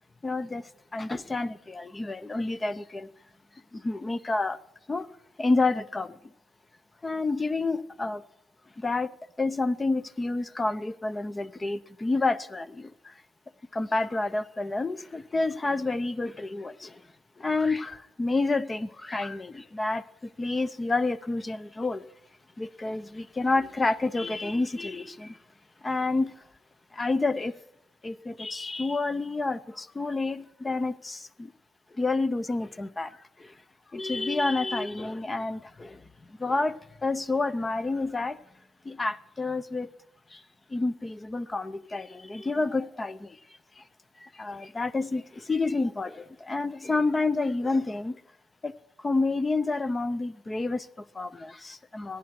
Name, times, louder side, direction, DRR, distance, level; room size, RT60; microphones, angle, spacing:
voice 1, 0.2-3.1 3.7-4.6 4.9-5.1 5.4-6.2 7.0-8.2 8.8-13.1 13.7-17.0 17.4-22.0 22.6-25.4 25.8-26.4 26.9-27.6 28.0-31.5 31.9-33.5 33.9-38.4 38.8-39.9 40.3-40.4 40.7-43.4 43.8-43.9 44.2-48.2 48.6-48.7 49.0-52.2, left 3 dB, 25° left, 0.6 m, -29 dB
21.0 x 9.6 x 5.9 m
cardioid pair, 90°, 0 cm